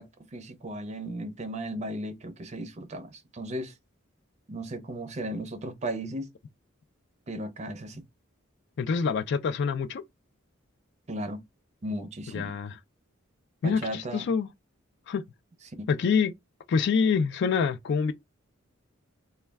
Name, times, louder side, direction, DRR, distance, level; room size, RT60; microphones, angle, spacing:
voice 1, 0.0-3.7 4.5-6.3 7.3-8.0 11.1-11.4 11.8-12.5 13.6-14.3 15.6-15.9, right 1 dB, 35° right, 0.5 m, -36 dB
voice 2, 8.8-10.0 12.3-12.8 13.6-14.5 15.1-15.2 15.9-16.3 16.7-18.1, left 5 dB, 60° left, 0.3 m, -26 dB
2.2 x 2.1 x 3.3 m
head